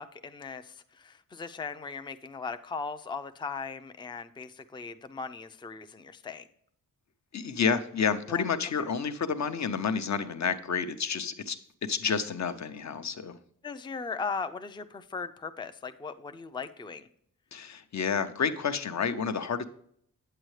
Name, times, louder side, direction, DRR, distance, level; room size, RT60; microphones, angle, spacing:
voice 1, 0.0-6.5 8.3-8.5 8.8-8.9 13.6-17.1, left 5 dB, 15° left, 10 dB, 0.4 m, -38 dB
voice 2, 7.3-11.6 11.8-13.4 17.5-19.6, left 6 dB, 55° left, 10 dB, 0.7 m, -30 dB
8.9 x 7.7 x 3.2 m, 0.66 s
wide cardioid pair, 125°, 34 cm